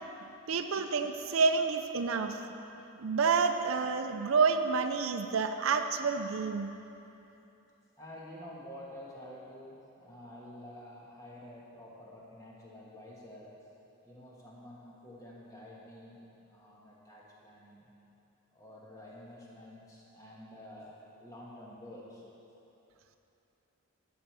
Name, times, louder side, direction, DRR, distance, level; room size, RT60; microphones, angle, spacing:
voice 1, 0.5-2.4 3.0-6.7, right 5 dB, 70° right, 7 dB, 0.5 m, -29 dB
voice 2, 8.0-13.5 14.0-16.2 16.4-17.9 18.5-22.2, left 1 dB, 15° left, -5 dB, 1.4 m, -49 dB
11.0 x 5.2 x 6.1 m, 2.9 s
head